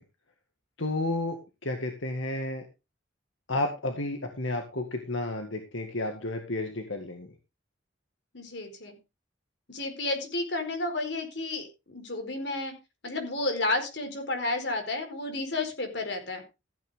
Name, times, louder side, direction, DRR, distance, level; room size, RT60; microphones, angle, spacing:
voice 1, 0.8-2.6 3.5-7.3, left 2 dB, 85° left, 5 dB, 2.0 m, -32 dB
voice 2, 8.3-9.0 9.7-12.7 13.0-16.4, left 2 dB, 60° left, 5 dB, 4.5 m, -31 dB
15.0 x 9.2 x 3.7 m, 0.27 s
head